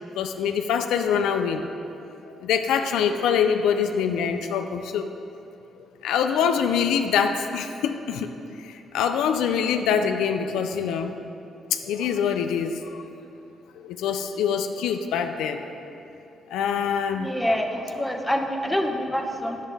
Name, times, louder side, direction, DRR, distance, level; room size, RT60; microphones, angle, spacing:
voice 1, 0.2-1.7 2.4-5.1 6.0-8.3 8.6-11.2 11.7-13.1 13.8-15.7 16.5-17.3, left 7 dB, 85° left, 6 dB, 0.4 m, -24 dB
voice 2, 17.2-19.6, equal, 5° left, 4 dB, 0.7 m, -26 dB
8.8 x 7.3 x 3.4 m, 2.8 s
cardioid pair, 70°, 0 cm